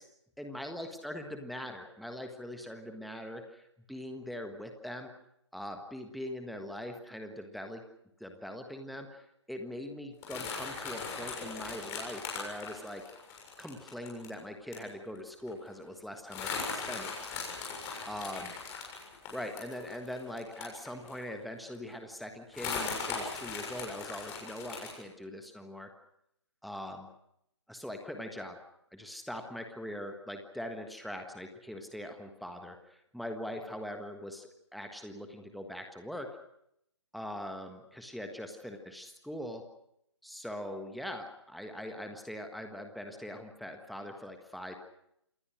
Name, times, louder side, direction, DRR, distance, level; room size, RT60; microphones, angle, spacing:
voice 1, 0.4-5.1 5.5-7.8 8.2-13.0 13.6-17.4 18.1-18.5 19.3-25.9 26.6-27.1 27.7-28.6 28.9-36.3 37.1-39.6 40.2-44.8, left 1 dB, ahead, 5 dB, 1.5 m, -42 dB
sound 1, 10.2-14.3 14.7-14.9 15.2-15.3 15.5-15.7 16.3-21.3 21.7-21.8 22.5-25.0, left 5 dB, 20° left, 7.0 m, -39 dB
28.0 x 20.5 x 6.4 m, 0.77 s
figure-of-eight pair, 140°, 15 cm